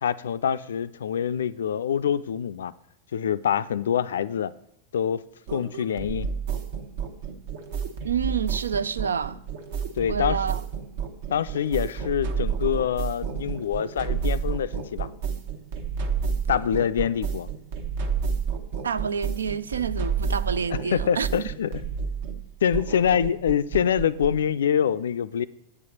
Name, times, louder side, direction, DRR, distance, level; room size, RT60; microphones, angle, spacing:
voice 1, 0.0-2.7 3.1-4.5 4.9-5.2 5.5-6.3 10.0-10.4 11.3-15.1 16.5-17.5 20.7-21.8 22.6-25.5, left 8 dB, 65° left, 0.3 m, -25 dB
sound 1, 5.5-24.5, right 6 dB, 55° right, 0.9 m, -30 dB
voice 2, 8.0-9.4 10.1-10.6 18.8-21.5, right 6 dB, 70° right, 0.3 m, -28 dB
8.4 x 4.6 x 7.1 m
figure-of-eight pair, 90°, 0 cm